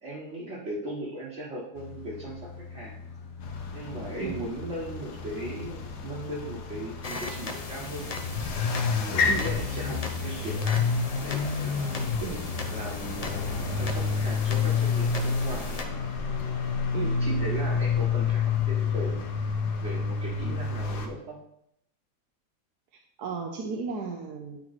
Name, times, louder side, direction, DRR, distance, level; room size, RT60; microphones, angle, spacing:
voice 1, 0.0-3.0 3.7-8.1 8.9-10.9 11.2-12.1 12.7-15.9 17.0-19.2 19.8-21.4, right 1 dB, 45° right, -5 dB, 1.6 m, -38 dB
sound 1, 1.7-9.1, left 5 dB, 55° left, 1.3 m, -44 dB
sound 2, 3.4-21.1, left 5 dB, 75° left, 1.5 m, -29 dB
sound 3, 7.0-15.8, left 3 dB, 35° left, 0.6 m, -39 dB
voice 2, 23.2-24.6, right 5 dB, 75° right, 1 dB, 1.3 m, -34 dB
11.5 x 4.6 x 4.1 m, 0.77 s
omnidirectional pair, 1.8 m